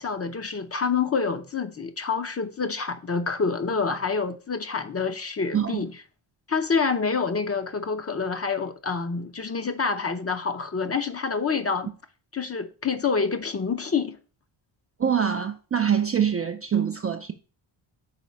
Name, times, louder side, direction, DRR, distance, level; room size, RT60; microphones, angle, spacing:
voice 1, 0.0-5.9 6.5-11.9 12.3-14.2, left 5 dB, 30° left, 0.6 m, -27 dB
voice 2, 5.5-5.8 15.0-17.3, right 8 dB, 30° right, 0.4 m, -24 dB
5.8 x 4.1 x 5.2 m
wide cardioid pair, 125°, 50 cm